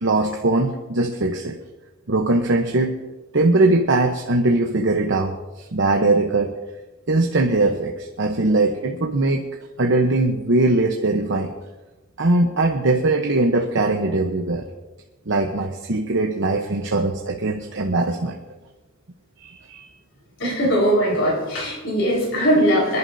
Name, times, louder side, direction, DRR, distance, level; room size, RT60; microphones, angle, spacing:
voice 1, 0.0-1.6 2.1-3.0 3.3-6.5 7.1-9.4 9.8-11.5 12.2-14.7 15.3-18.4 19.4-19.9, right 2 dB, 65° right, 2 dB, 0.9 m, -21 dB
voice 2, 20.4-23.0, equal, 70° left, -2 dB, 4.7 m, -20 dB
26.5 x 11.0 x 2.7 m, 1.1 s
head